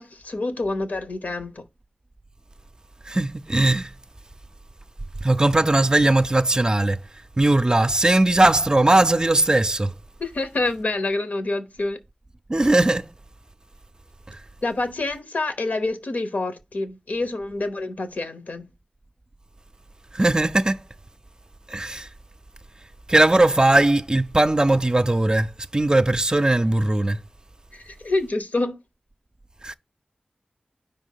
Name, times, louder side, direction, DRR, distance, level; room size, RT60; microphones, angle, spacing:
voice 1, 0.0-1.6 10.2-12.0 14.6-18.7 27.7-28.8, left 2 dB, 80° left, 0.9 m, -27 dB
voice 2, 3.1-3.9 5.2-7.0 7.4-9.9 12.5-13.1 20.1-20.8 21.7-22.1 23.1-27.2 29.6-29.7, right 2 dB, 30° right, 0.4 m, -19 dB
5.0 x 3.5 x 5.5 m
wide cardioid pair, 60°, 3 cm